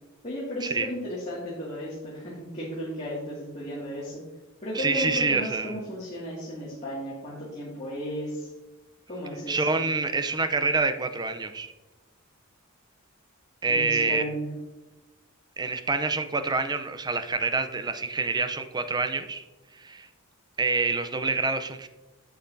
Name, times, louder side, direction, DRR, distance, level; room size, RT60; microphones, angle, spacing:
voice 1, 0.2-4.2 4.6-8.5 9.1-9.7 13.7-14.5, equal, 30° left, -7 dB, 2.1 m, -34 dB
voice 2, 4.7-5.7 9.5-11.7 13.6-14.2 15.6-19.4 19.7-20.1 20.6-21.9, right 3 dB, 20° right, 8 dB, 0.5 m, -27 dB
8.5 x 7.7 x 2.7 m, 1.1 s
head